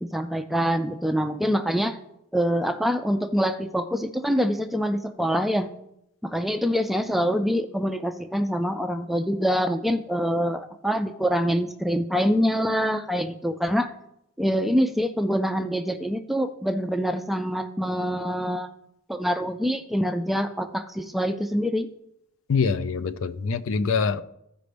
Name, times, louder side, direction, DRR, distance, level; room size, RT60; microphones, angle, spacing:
voice 1, 0.0-2.0 2.3-5.7 6.2-13.9 14.4-18.7 19.1-21.9, equal, ahead, 0.3 m, -25 dB
voice 2, 22.5-24.2, left 5 dB, 70° left, 0.4 m, -24 dB
14.0 x 5.1 x 3.4 m
head